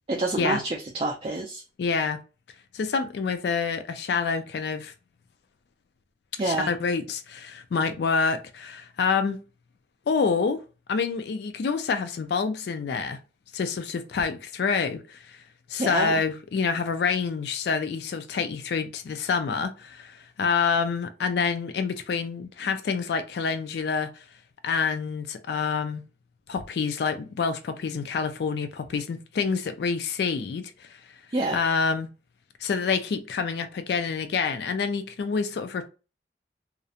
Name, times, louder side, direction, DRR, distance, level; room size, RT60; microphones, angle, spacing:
voice 1, 0.1-1.6 6.4-6.7 15.8-16.2 31.3-31.6, right 2 dB, 30° right, 0.3 m, -27 dB
voice 2, 1.8-2.2 2.7-4.9 6.4-9.4 10.1-10.6 10.9-13.2 13.5-15.4 15.7-24.1 24.6-26.0 26.5-30.9 31.5-32.1 32.6-35.9, left 5 dB, 60° left, 0.3 m, -27 dB
2.4 x 2.0 x 2.7 m
head